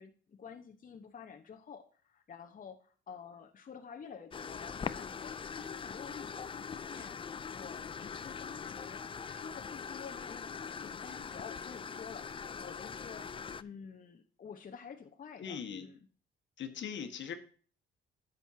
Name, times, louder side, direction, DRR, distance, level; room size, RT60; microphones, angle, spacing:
voice 1, 0.0-9.0 9.3-13.3 13.6-16.0, left 6 dB, 45° left, 3 dB, 1.1 m, -50 dB
sound 1, 4.3-13.6, left 6 dB, 25° left, 0.4 m, -42 dB
voice 2, 15.4-15.9 16.6-17.3, left 7 dB, 65° left, 5 dB, 1.5 m, -40 dB
11.0 x 7.7 x 2.8 m, 0.42 s
cardioid pair, 90°, 20 cm